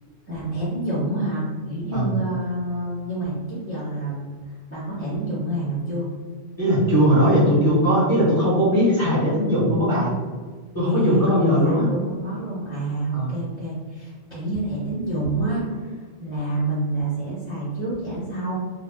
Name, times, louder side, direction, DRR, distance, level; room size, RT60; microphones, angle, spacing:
voice 1, 0.0-4.3 4.7-6.1 10.8-18.5, right 2 dB, 10° right, -10 dB, 0.7 m, -28 dB
voice 2, 6.6-10.1 10.7-11.9 13.1-13.3, equal, 20° left, -11 dB, 1.1 m, -19 dB
2.7 x 2.1 x 3.5 m, 1.5 s
omnidirectional pair, 1.3 m